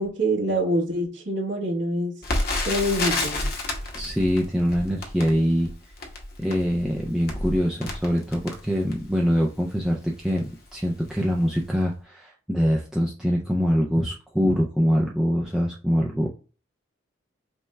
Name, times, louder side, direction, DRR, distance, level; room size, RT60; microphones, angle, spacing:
voice 1, 0.0-2.1 2.6-3.4, right 1 dB, 65° right, 1.4 m, -25 dB
Crackle, 2.2-9.2 9.8-9.9 10.2-10.4 11.1-11.3 11.5-11.6, left 2 dB, 50° left, 0.9 m, -30 dB
voice 2, 3.9-5.7 6.4-16.3, equal, 5° right, 0.4 m, -24 dB
5.3 x 2.3 x 3.2 m
head